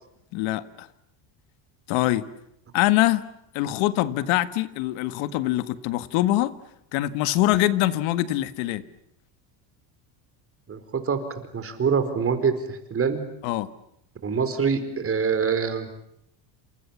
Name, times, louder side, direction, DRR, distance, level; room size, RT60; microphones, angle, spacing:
voice 1, 0.3-0.9 1.9-2.2 2.7-3.2 3.5-6.5 6.9-8.8 13.4-13.7, left 15 dB, 75° left, 13 dB, 1.9 m, -23 dB
voice 2, 10.7-13.2 14.2-15.9, right 6 dB, 30° right, 9 dB, 4.6 m, -25 dB
28.5 x 28.0 x 7.3 m, 0.75 s
cardioid pair, 130°, 48 cm